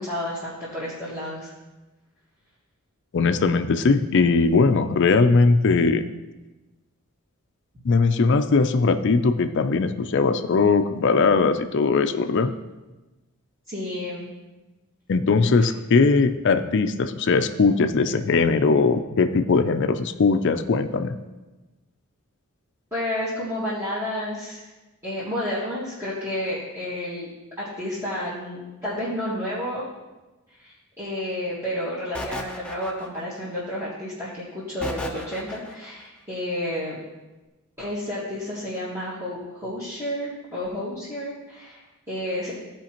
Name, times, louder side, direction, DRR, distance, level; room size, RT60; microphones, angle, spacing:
voice 1, 0.0-1.5 13.7-14.3 22.9-24.6 25.0-27.3 27.6-29.9 30.5-37.0 37.8-42.5, left 1 dB, 15° right, -10 dB, 1.7 m, -31 dB
voice 2, 3.1-6.0 7.8-12.5 15.1-21.2, left 4 dB, 55° left, 9 dB, 0.4 m, -20 dB
sound 1, 32.1-33.4 34.8-35.9, left 1 dB, 5° left, 0.6 m, -34 dB
15.0 x 5.0 x 2.9 m, 1.1 s
head